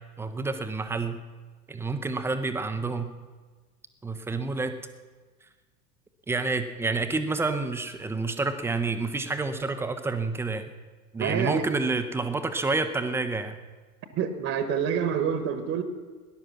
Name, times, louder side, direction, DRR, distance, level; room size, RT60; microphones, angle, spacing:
voice 1, 0.2-1.2 1.7-3.1 4.0-4.8 6.3-10.6 11.1-13.6, right 3 dB, 5° right, 8 dB, 0.5 m, -29 dB
voice 2, 11.2-11.6 14.1-15.8, right 7 dB, 30° right, 10 dB, 1.2 m, -27 dB
18.5 x 11.0 x 6.0 m, 1.4 s
figure-of-eight pair, 90°, 50 cm